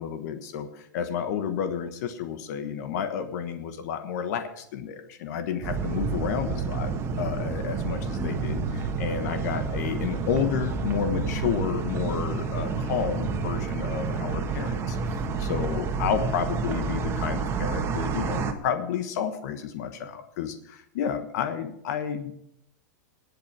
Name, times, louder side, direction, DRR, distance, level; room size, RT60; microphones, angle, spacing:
voice 1, 0.0-6.9 7.2-15.0 15.4-22.3, left 8 dB, 60° left, 9 dB, 1.3 m, -31 dB
sound 1, 5.6-18.5, right 5 dB, 25° right, 1.6 m, -29 dB
19.0 x 8.3 x 4.8 m, 0.75 s
hypercardioid pair, 135°, 10 cm